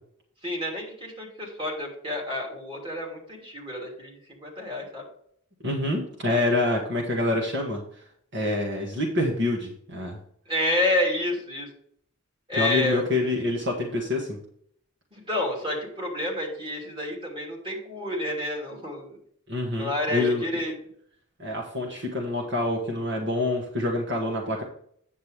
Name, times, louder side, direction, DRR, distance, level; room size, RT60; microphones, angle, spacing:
voice 1, 0.4-5.0 10.5-11.7 12.5-13.0 15.1-19.2 19.8-20.7, left 1 dB, 25° right, -2 dB, 3.0 m, -29 dB
voice 2, 5.6-8.0 8.3-10.2 12.6-14.4 19.5-20.4 21.4-24.6, left 2 dB, 55° right, -1 dB, 1.7 m, -26 dB
9.2 x 7.7 x 3.4 m, 0.64 s
head